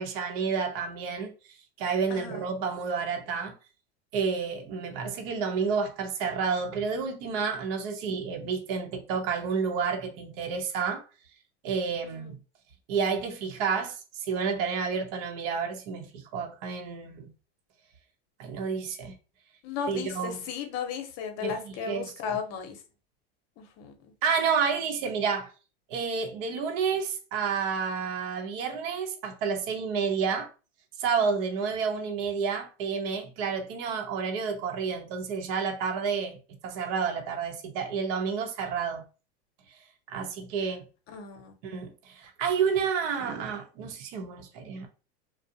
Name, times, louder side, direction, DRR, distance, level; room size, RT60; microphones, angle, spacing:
voice 1, 0.0-3.5 4.1-11.0 11.6-12.4 12.9-17.3 18.4-19.1 19.9-20.4 21.4-22.4 24.2-25.5 25.9-30.5 31.0-39.0 40.1-40.8 41.6-44.9, right 6 dB, 60° right, 0.7 m, -30 dB
voice 2, 2.1-2.4 12.0-12.3 19.6-22.8 23.6-23.9 41.1-41.5, left 6 dB, 50° left, 0.8 m, -35 dB
2.5 x 2.0 x 2.6 m
hypercardioid pair, 95°, 32 cm